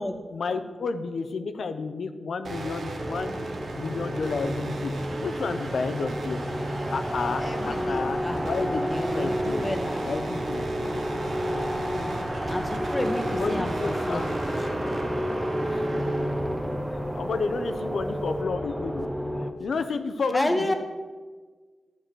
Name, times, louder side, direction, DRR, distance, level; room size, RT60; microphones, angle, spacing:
voice 1, 0.3-3.4 3.7-4.9 5.2-6.4 6.9-9.8 10.1-10.7 13.3-14.3 15.6-15.9 16.9-19.1 19.6-20.7, left 4 dB, 80° left, 9 dB, 0.7 m, -31 dB
sound 1, 2.4-18.4, right 2 dB, 80° right, 1.4 m, -37 dB
sound 2, 3.0-19.5, equal, 5° right, 0.8 m, -30 dB
voice 2, 7.4-10.1 11.9-14.2 14.6-14.7 20.3-20.7, left 1 dB, 20° left, 5 dB, 1.2 m, -31 dB
11.5 x 4.9 x 7.6 m, 1.4 s
wide cardioid pair, 95°, 0 cm